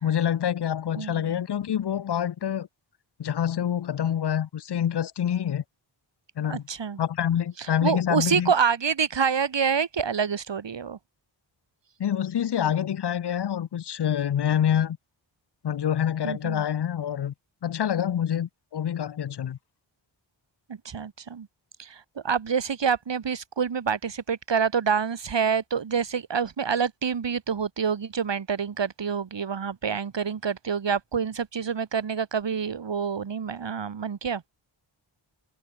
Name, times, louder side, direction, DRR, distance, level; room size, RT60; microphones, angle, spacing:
voice 1, 0.0-2.7 3.2-5.6 6.4-6.6 7.0-8.5 12.0-15.0 15.6-17.3 17.6-19.6, left 9 dB, 55° left, 0.6 m, -26 dB
voice 2, 1.0-1.3 6.5-7.0 7.6-11.0 16.2-16.6 20.7-21.5 21.8-34.4, right 6 dB, 60° right, 1.6 m, -27 dB
wide cardioid pair, 100°, 48 cm